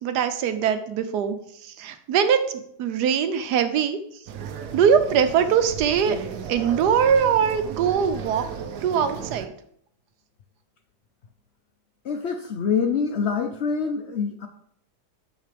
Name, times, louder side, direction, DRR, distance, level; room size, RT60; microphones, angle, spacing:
voice 1, 0.0-1.4 1.6-2.4 2.8-4.0 4.7-6.2 6.5-8.4 8.8-9.5, right 7 dB, 80° right, 9 dB, 1.3 m, -21 dB
sound 1, 4.3-9.5, right 7 dB, 65° right, 1.0 m, -35 dB
voice 2, 12.0-14.5, left 6 dB, 60° left, 6 dB, 0.7 m, -25 dB
9.0 x 6.5 x 3.4 m, 0.68 s
omnidirectional pair, 1.8 m